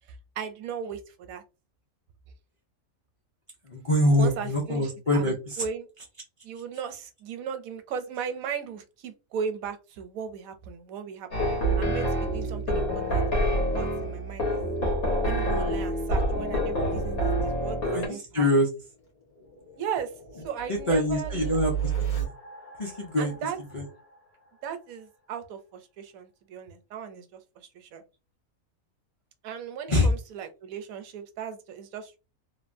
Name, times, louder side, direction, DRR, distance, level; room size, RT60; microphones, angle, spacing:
voice 1, 0.1-1.4 4.2-5.9 6.4-11.3 11.8-14.5 14.8-15.0 15.2-18.7 19.8-20.1 20.4-21.6 23.2-23.6 24.6-28.0 29.4-32.2, right 7 dB, 80° right, 1.0 m, -37 dB
voice 2, 3.7-5.6 17.9-18.7 20.7-21.7 22.0-22.3 22.8-23.9 29.9-30.1, left 1 dB, 45° left, 0.4 m, -25 dB
sound 1, 11.3-18.1, right 1 dB, 90° left, 1.7 m, -27 dB
sound 2, 18.3-25.1, right 9 dB, 65° left, 1.5 m, -36 dB
3.2 x 2.1 x 2.5 m
omnidirectional pair, 1.4 m